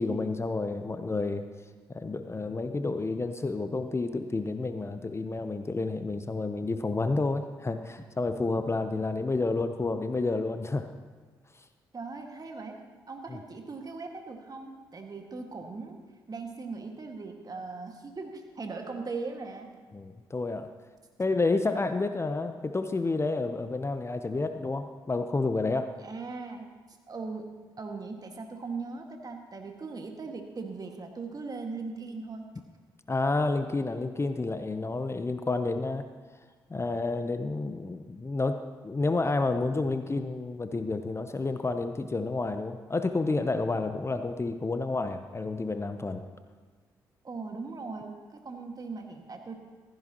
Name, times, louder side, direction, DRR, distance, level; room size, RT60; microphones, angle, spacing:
voice 1, 0.0-1.4 1.9-10.9 13.3-13.4 19.9-20.7 21.2-25.9 33.1-36.1 36.7-46.3, left 3 dB, 25° left, 9 dB, 0.8 m, -30 dB
voice 2, 11.9-12.8 13.1-16.0 16.3-19.7 26.0-27.5 27.8-32.5 47.2-49.6, right 4 dB, 40° right, 3 dB, 1.9 m, -39 dB
15.5 x 14.5 x 3.0 m, 1.4 s
hypercardioid pair, 40°, 10 cm